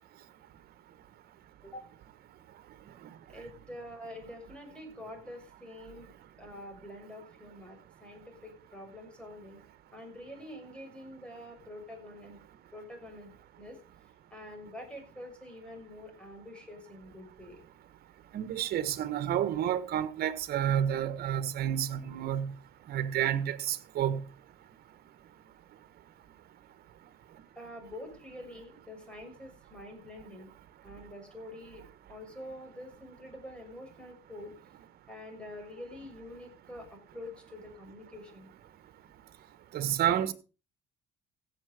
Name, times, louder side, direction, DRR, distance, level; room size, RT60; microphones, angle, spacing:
voice 1, 3.3-6.1 6.4-9.6 9.9-12.4 12.7-13.3 13.6-13.8 14.3-17.6 27.5-30.5 30.8-31.8 32.1-34.6 35.1-38.5, left 1 dB, 5° left, 6.2 m, -46 dB
voice 2, 18.3-22.5 22.9-24.2 39.7-40.3, right 10 dB, 65° right, 1.6 m, -30 dB
16.0 x 7.2 x 5.2 m
cardioid pair, 110°, 17 cm